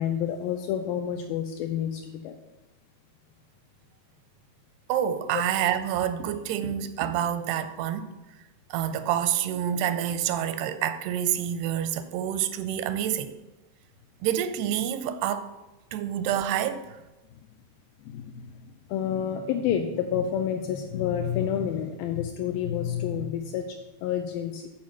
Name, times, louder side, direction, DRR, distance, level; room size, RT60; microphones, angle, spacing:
voice 1, 0.0-2.4 5.3-5.4 18.0-24.7, left 9 dB, 80° left, 2.1 m, -29 dB
voice 2, 4.9-8.1 8.7-13.3 14.2-15.5 15.9-17.0, right 10 dB, 85° right, 2.6 m, -28 dB
Tap, 5.7-7.4 9.4-10.1, right 2 dB, 55° right, 1.0 m, -44 dB
8.8 x 4.6 x 7.2 m
omnidirectional pair, 4.6 m